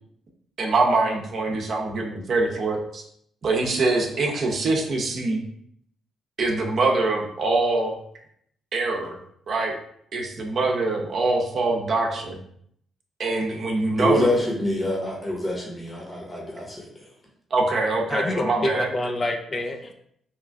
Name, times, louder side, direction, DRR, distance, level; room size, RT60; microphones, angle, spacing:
voice 1, 0.6-3.0 3.4-5.4 6.4-8.0 8.7-9.2 9.5-9.8 10.1-12.4 13.2-14.3 17.5-18.9, right 3 dB, 55° right, 1 dB, 0.7 m, -24 dB
voice 2, 14.0-16.8, left 1 dB, 20° left, -1 dB, 0.9 m, -26 dB
voice 3, 18.1-19.9, left 1 dB, 40° left, 4 dB, 0.4 m, -27 dB
2.9 x 2.3 x 3.4 m, 0.68 s
supercardioid pair, 55°, 0 cm